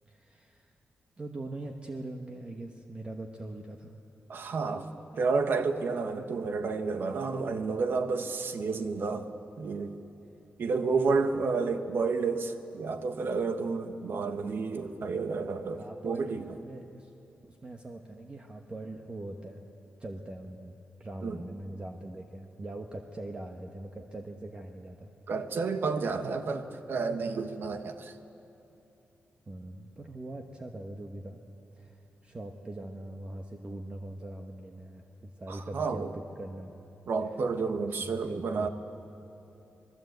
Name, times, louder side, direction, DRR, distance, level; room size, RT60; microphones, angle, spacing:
voice 1, 0.1-0.7 1.2-3.9 14.0-14.3 15.8-17.1 17.5-19.6 20.0-20.7 21.0-25.1 29.5-31.4 31.7-36.8 38.1-38.7, right 2 dB, 30° right, 3 dB, 1.2 m, -42 dB
voice 2, 4.3-4.9 5.1-9.3 9.6-9.9 10.6-16.4 21.2-21.4 25.3-28.1 35.5-36.1 37.1-38.7, right 4 dB, 65° right, 8 dB, 1.3 m, -30 dB
26.0 x 20.0 x 8.1 m, 3.0 s
wide cardioid pair, 130°, 4 cm